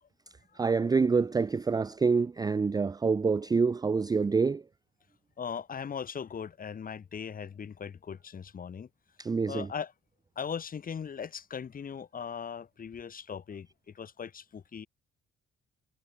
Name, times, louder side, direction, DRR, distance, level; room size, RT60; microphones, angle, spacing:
voice 1, 0.6-4.6 9.2-9.7, right 4 dB, 20° right, 0.5 m, -26 dB
voice 2, 5.4-8.9 9.5-9.9 10.4-13.7 13.9-14.9, left 7 dB, 45° left, 2.4 m, -39 dB
cardioid pair, 90°, 20 cm